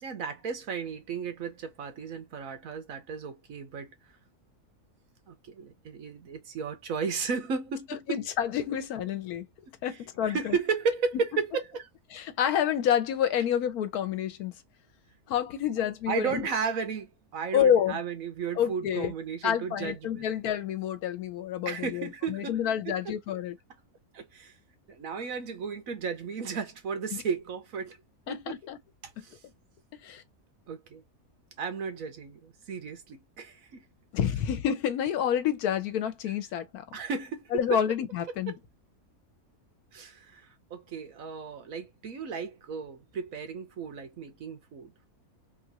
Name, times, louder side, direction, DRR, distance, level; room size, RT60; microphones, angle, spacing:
voice 1, 0.0-3.9 5.3-8.1 10.2-11.9 16.1-20.2 21.6-22.6 22.8-23.1 24.1-24.5 24.9-28.0 28.3-28.6 29.0-29.4 30.7-31.0 31.6-33.8 36.9-37.8 39.9-44.9, right 5 dB, 70° right, 1.3 m, -34 dB
voice 2, 8.1-9.5 9.8-10.6 12.1-14.5 15.3-16.4 17.5-18.0 18.6-19.1 19.4-23.5 27.1-27.2 28.3-28.8 29.2-29.3 29.9-30.2 34.1-36.8 37.5-38.5, left 9 dB, 85° left, 1.2 m, -28 dB
3.6 x 2.5 x 2.7 m
omnidirectional pair, 1.5 m